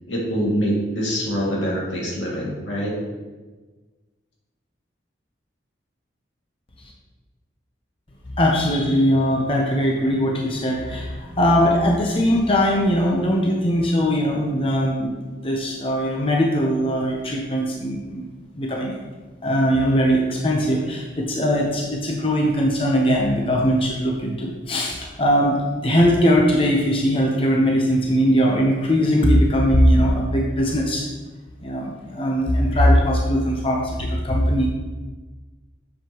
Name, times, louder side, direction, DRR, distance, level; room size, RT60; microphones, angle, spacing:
voice 1, 0.1-2.9, equal, 90° left, -4 dB, 2.4 m, -24 dB
voice 2, 8.3-18.3 18.5-19.0 19.4-31.1 31.6-34.7, equal, 30° left, -1 dB, 0.8 m, -20 dB
7.7 x 7.2 x 3.1 m, 1.3 s
head